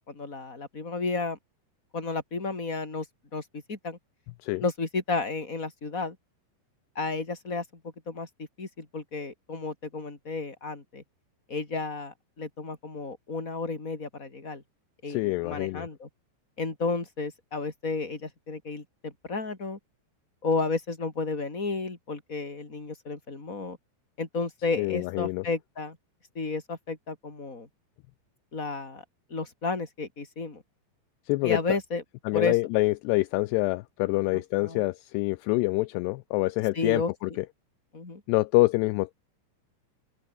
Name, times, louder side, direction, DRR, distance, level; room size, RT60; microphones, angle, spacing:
voice 1, 0.1-1.4 1.9-3.1 3.3-4.0 4.6-6.2 6.9-7.6 8.1-8.3 8.6-11.0 11.5-14.6 15.0-16.1 16.6-19.8 20.4-23.8 24.2-26.0 26.3-27.7 28.5-29.0 29.3-30.6 31.4-32.0 32.3-32.5 34.3-34.8 36.7-37.1 37.9-38.2, left 3 dB, 20° left, 4.5 m, -32 dB
voice 2, 15.1-15.9 24.8-25.4 31.3-31.6 32.3-37.5 38.3-39.1, left 22 dB, 85° left, 2.4 m, -26 dB
open air
omnidirectional pair, 5.3 m